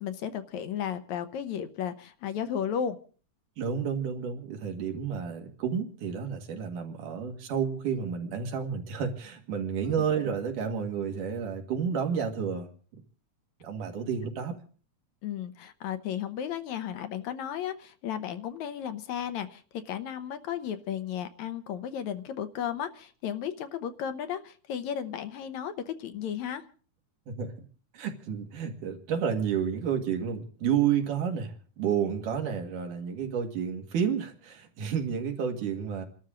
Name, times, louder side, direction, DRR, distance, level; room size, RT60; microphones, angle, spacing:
voice 1, 0.0-3.0 9.8-9.9 15.2-26.6, left 9 dB, 70° left, 10 dB, 2.2 m, -34 dB
voice 2, 3.6-12.7 13.6-14.5 27.3-27.5 27.9-36.1, right 7 dB, 90° right, 4 dB, 3.4 m, -30 dB
28.5 x 12.5 x 3.8 m, 0.41 s
omnidirectional pair, 3.5 m